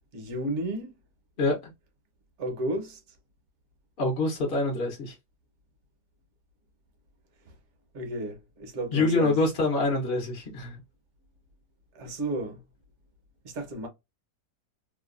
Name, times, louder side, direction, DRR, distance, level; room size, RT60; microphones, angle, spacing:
voice 1, 0.1-1.0 2.4-3.2 7.4-7.6 7.9-9.4 11.9-12.6 13.4-13.9, right 1 dB, 50° right, 1.0 m, -33 dB
voice 2, 4.0-5.1 8.9-10.8, left 2 dB, 45° left, 0.8 m, -25 dB
3.0 x 2.2 x 2.4 m
omnidirectional pair, 1.8 m